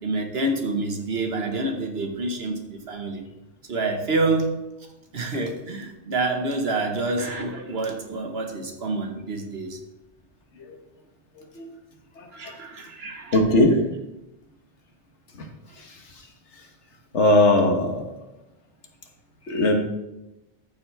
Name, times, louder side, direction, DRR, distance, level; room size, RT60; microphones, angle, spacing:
voice 1, 0.0-3.2 3.7-4.6 5.1-9.8 12.3-13.4, right 2 dB, 65° right, 4 dB, 1.5 m, -27 dB
voice 2, 13.3-13.7 17.1-18.0 19.5-19.7, left 2 dB, 85° left, 3 dB, 1.7 m, -18 dB
13.5 x 7.2 x 3.4 m, 0.95 s
omnidirectional pair, 1.1 m